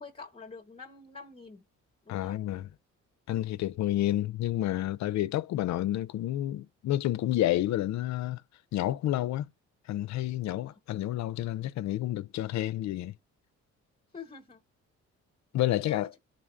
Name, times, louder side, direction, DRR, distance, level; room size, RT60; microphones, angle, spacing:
voice 1, 0.0-1.6 2.0-2.4 10.5-10.8 14.1-14.6 15.7-16.2, left 4 dB, 20° left, 1.0 m, -47 dB
voice 2, 2.1-2.7 3.3-8.4 8.7-9.5 9.9-13.2 15.5-16.1, left 14 dB, 65° left, 0.5 m, -30 dB
11.0 x 3.9 x 2.5 m
cardioid pair, 90°, 30 cm